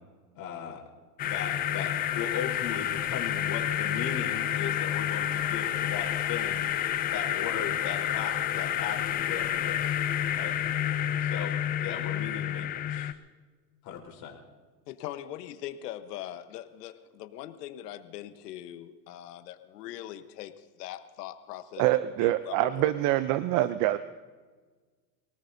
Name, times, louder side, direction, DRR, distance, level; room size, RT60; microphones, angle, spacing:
voice 1, 0.3-0.8 1.2-6.7 7.1-10.0 10.3-10.5 11.2-11.5 11.8-13.1 13.8-14.4, left 7 dB, 45° left, -1 dB, 4.0 m, -37 dB
sound 1, 1.2-13.1, left 11 dB, 20° left, 0.3 m, -29 dB
voice 2, 14.9-21.8 22.2-22.9, left 12 dB, 80° left, 10 dB, 1.2 m, -41 dB
voice 3, 21.8-24.0, right 15 dB, 45° right, 14 dB, 0.6 m, -25 dB
24.0 x 18.5 x 2.7 m, 1.4 s
supercardioid pair, 120°, 47 cm